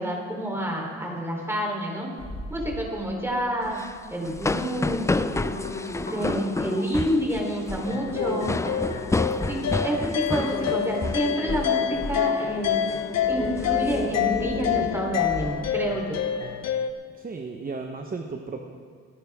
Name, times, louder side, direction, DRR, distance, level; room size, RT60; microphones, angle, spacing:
voice 1, 0.0-2.1 2.5-3.8 4.1-5.0 6.0-8.5 9.5-12.8 13.3-16.2, equal, 10° right, -1 dB, 3.8 m, -28 dB
sound 1, 2.2-2.8 3.2-3.7 4.3-4.4 4.8-7.1 7.5-7.7 8.1-15.6 16.1-16.2, left 2 dB, 30° left, 3.9 m, -35 dB
sound 2, 3.7-11.7 12.0-12.3 12.7-13.0 13.4-14.6, left 3 dB, 10° left, 0.4 m, -30 dB
voice 2, 5.9-6.3 17.1-18.6, right 4 dB, 30° right, 4 dB, 1.1 m, -35 dB
sound 3, 7.8-16.9, left 9 dB, 60° left, 1.0 m, -28 dB
25.0 x 10.0 x 3.7 m, 2.1 s
cardioid pair, 90°, 30 cm